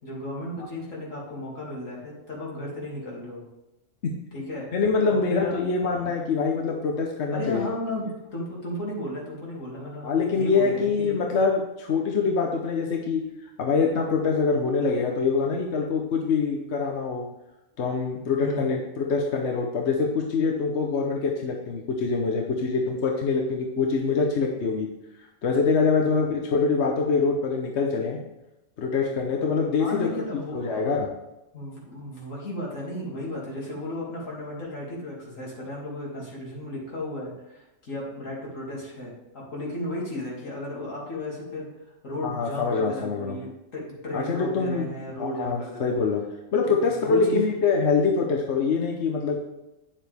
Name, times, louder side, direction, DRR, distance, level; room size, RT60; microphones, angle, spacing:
voice 1, 0.0-3.4 4.3-4.8 5.1-5.5 5.9-6.1 7.3-11.2 18.4-18.8 25.9-26.1 29.8-31.0 31.5-41.7 42.0-45.9 46.6-47.4, left 1 dB, 80° left, -5 dB, 3.0 m, -34 dB
voice 2, 4.7-7.7 10.0-13.2 13.6-17.3 17.8-24.9 25.4-28.2 28.8-30.2 30.5-31.1 42.2-43.4 44.1-44.9 45.2-46.2 46.5-49.4, left 4 dB, 60° left, 1 dB, 1.2 m, -24 dB
9.6 x 7.2 x 3.5 m, 0.95 s
omnidirectional pair, 1.3 m